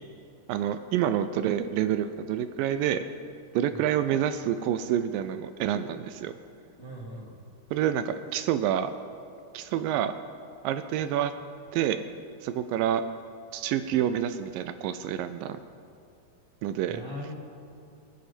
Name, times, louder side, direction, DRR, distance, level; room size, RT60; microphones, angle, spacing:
voice 1, 0.5-3.0 3.5-6.3 7.7-8.9 9.5-10.2 10.6-11.3 11.7-12.0 12.4-13.0 13.5-15.6 16.6-17.0, right 10 dB, 80° right, 11 dB, 2.2 m, -28 dB
voice 2, 6.8-7.4 16.9-17.3, equal, 10° left, -4 dB, 1.4 m, -40 dB
25.0 x 9.4 x 4.4 m, 2.5 s
omnidirectional pair, 4.2 m